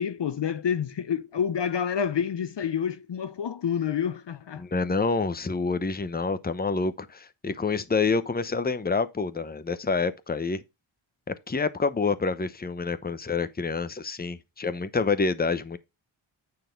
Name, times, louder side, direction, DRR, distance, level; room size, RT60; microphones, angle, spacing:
voice 1, 0.0-4.6, left 8 dB, 60° left, 0.6 m, -28 dB
voice 2, 4.6-10.6 11.5-15.8, left 4 dB, 20° left, 0.7 m, -27 dB
9.2 x 4.0 x 5.2 m
wide cardioid pair, 70°, 50 cm